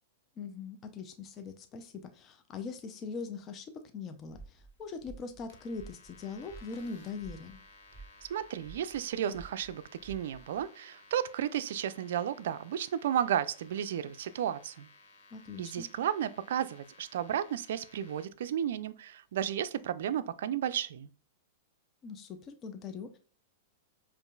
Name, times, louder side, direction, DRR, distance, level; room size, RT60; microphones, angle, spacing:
voice 1, 0.4-3.7 3.9-7.6 15.3-15.9 22.0-23.2, left 5 dB, 35° left, 0.5 m, -41 dB
sound 1, 4.2-10.6, right 3 dB, 5° left, 1.9 m, -53 dB
sound 2, 5.5-18.3, left 3 dB, 65° left, 0.9 m, -58 dB
voice 2, 8.3-14.9 15.6-21.1, right 10 dB, 70° right, 0.3 m, -33 dB
5.2 x 2.5 x 2.3 m
hypercardioid pair, 115°, 0 cm